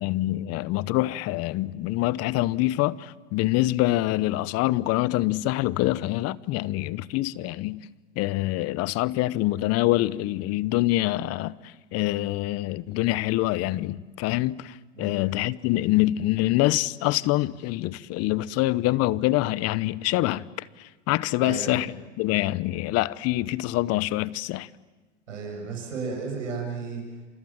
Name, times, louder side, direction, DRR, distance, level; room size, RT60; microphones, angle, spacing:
voice 1, 0.0-7.9 8.2-24.7, left 17 dB, 40° left, 0.9 m, -25 dB
voice 2, 21.4-21.8 25.3-27.0, right 4 dB, 90° right, 7.8 m, -33 dB
29.0 x 27.5 x 7.4 m
hypercardioid pair, 110°, 37 cm